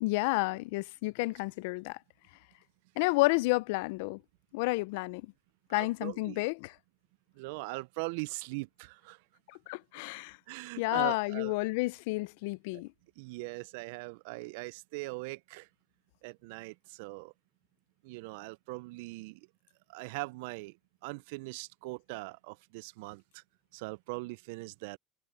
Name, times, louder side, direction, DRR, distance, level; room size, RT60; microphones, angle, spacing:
voice 1, 0.0-2.0 3.0-4.2 4.5-5.2 5.7-6.7 9.5-10.4 10.8-12.9, left 23 dB, 80° left, 0.5 m, -30 dB
voice 2, 5.7-6.4 7.4-9.2 10.5-11.6 13.2-15.7 16.2-17.3 18.0-19.4 19.9-20.8 21.0-23.4 23.7-25.0, right 25 dB, 80° right, 0.3 m, -41 dB
supercardioid pair, 95°, 0 cm